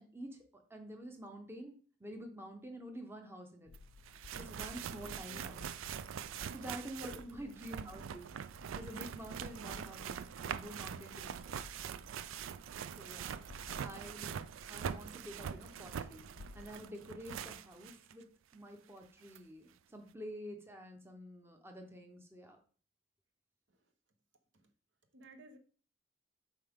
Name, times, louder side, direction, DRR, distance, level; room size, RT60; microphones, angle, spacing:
voice 1, 0.0-3.7 4.4-5.7 6.5-8.3 8.7-11.6 13.0-13.3 13.7-14.4 14.7-16.2 16.5-22.6, equal, 10° right, 0.7 m, -48 dB
sound 1, 3.6-16.9, left 3 dB, 60° left, 0.3 m, -58 dB
sound 2, 3.7-3.8 4.1-18.1 18.5-18.6 19.4-19.5, right 8 dB, 90° right, 0.4 m, -43 dB
voice 2, 5.1-5.5 7.0-7.4 23.7-23.9 24.5-24.7 25.1-25.6, right 1 dB, 70° right, 0.9 m, -57 dB
7.4 x 4.7 x 3.5 m
head